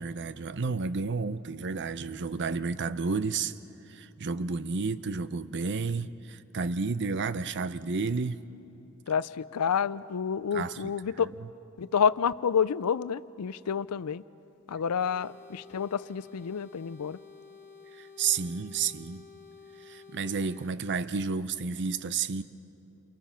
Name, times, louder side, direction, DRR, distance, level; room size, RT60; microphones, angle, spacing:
voice 1, 0.0-3.6 3.9-8.4 10.5-10.7 17.9-19.3 19.8-22.4, right 4 dB, 50° right, 14 dB, 0.6 m, -31 dB
voice 2, 9.1-11.3 11.8-14.2 14.7-17.2, left 7 dB, 85° left, 18 dB, 0.5 m, -29 dB
sound 1, 15.0-20.7, left 5 dB, 10° left, 1.4 m, -51 dB
29.5 x 23.5 x 5.7 m, 2.9 s
head